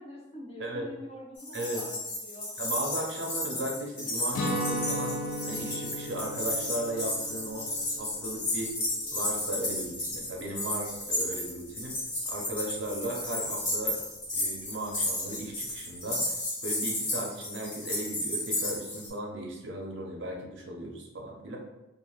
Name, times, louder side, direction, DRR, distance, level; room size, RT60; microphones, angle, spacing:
voice 1, 0.0-2.0 2.2-2.6 3.2-3.6, left 1 dB, 30° left, -2 dB, 0.5 m, -45 dB
sound 1, 1.4-19.1, left 1 dB, 70° left, 1.2 m, -33 dB
voice 2, 1.5-1.8 2.6-5.2 5.4-7.7 8.0-8.7 9.1-12.0 12.3-14.0 14.3-16.4 16.6-21.6, right 1 dB, 60° right, 0 dB, 0.5 m, -36 dB
Guitar, 4.3-10.2, equal, 85° left, 0.5 m, -36 dB
2.5 x 2.3 x 3.0 m, 0.97 s
head